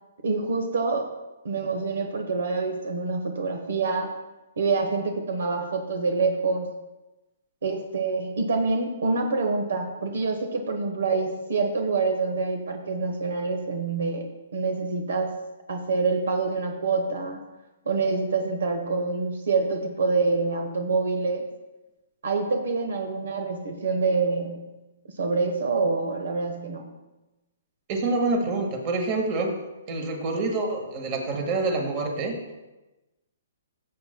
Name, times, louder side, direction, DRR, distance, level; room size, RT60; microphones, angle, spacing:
voice 1, 0.2-1.1 1.4-4.1 4.6-6.7 7.6-15.3 15.7-17.4 17.8-21.5 22.2-24.7 25.1-26.9, right 4 dB, 80° right, 5 dB, 1.1 m, -26 dB
voice 2, 27.9-29.5 29.9-32.3, right 3 dB, 30° right, 3 dB, 1.6 m, -26 dB
16.0 x 7.6 x 2.2 m, 1.1 s
hypercardioid pair, 155°, 0 cm